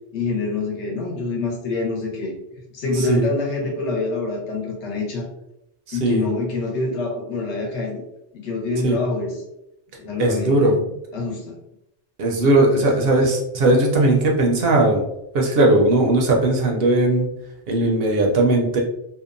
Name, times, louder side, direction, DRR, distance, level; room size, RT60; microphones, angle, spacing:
voice 1, 0.1-2.3 2.7-5.3 5.9-8.0 8.3-9.4 10.0-11.5 12.8-13.2, left 3 dB, 80° left, 0 dB, 1.0 m, -26 dB
voice 2, 5.9-6.3 8.8-9.0 10.2-10.8 12.2-15.1 15.3-17.3 17.7-18.8, right 2 dB, 65° right, 0 dB, 0.7 m, -18 dB
2.8 x 2.0 x 2.4 m, 0.84 s
omnidirectional pair, 1.2 m